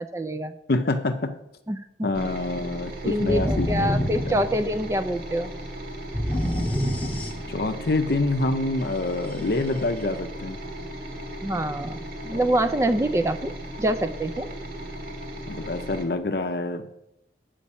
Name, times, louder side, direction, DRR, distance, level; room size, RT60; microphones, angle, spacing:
voice 1, 0.0-0.6 1.7-2.3 3.0-5.5 11.4-14.5, right 1 dB, 15° right, 10 dB, 0.4 m, -26 dB
voice 2, 0.7-1.4 2.0-4.4 7.5-10.6 15.5-16.9, left 2 dB, 60° left, 7 dB, 0.6 m, -26 dB
sound 1, 2.1-16.0, right 1 dB, 55° right, 1.4 m, -37 dB
sound 2, 3.3-5.0 6.1-7.8, equal, 10° left, 0.9 m, -27 dB
8.6 x 5.2 x 7.0 m, 0.82 s
head